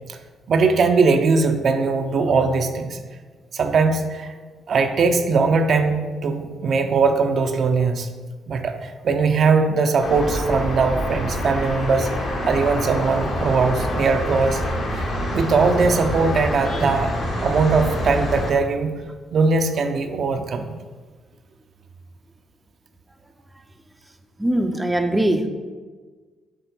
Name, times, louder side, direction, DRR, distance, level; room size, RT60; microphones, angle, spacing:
voice 1, 0.5-3.0 3.5-4.3 4.7-8.1 8.5-12.1 12.4-14.6 14.9-15.1 15.3-17.1 17.4-18.9 19.3-20.8, right 4 dB, 55° right, 6 dB, 0.6 m, -20 dB
sound 1, 10.0-18.5, equal, 60° left, 1.6 m, -26 dB
voice 2, 24.4-25.5, right 1 dB, 10° right, 5 dB, 0.5 m, -21 dB
7.0 x 3.3 x 5.4 m, 1.4 s
cardioid pair, 90°, 0 cm